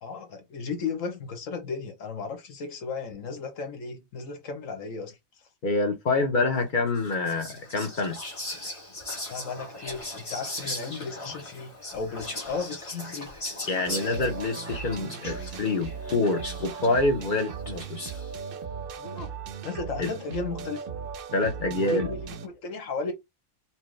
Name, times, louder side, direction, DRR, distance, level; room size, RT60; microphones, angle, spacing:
voice 1, 0.0-5.2 9.3-13.4 19.0-19.4 19.6-20.8 21.8-23.1, left 4 dB, 70° left, 1.2 m, -35 dB
voice 2, 5.6-8.2 13.7-18.0 20.0-20.1 21.3-22.1, left 2 dB, 45° left, 0.7 m, -26 dB
Whispering, 7.0-18.4, left 1 dB, 25° left, 1.3 m, -39 dB
sound 1, 13.8-22.5, right 6 dB, 65° right, 0.5 m, -38 dB
4.4 x 2.1 x 3.1 m
omnidirectional pair, 1.4 m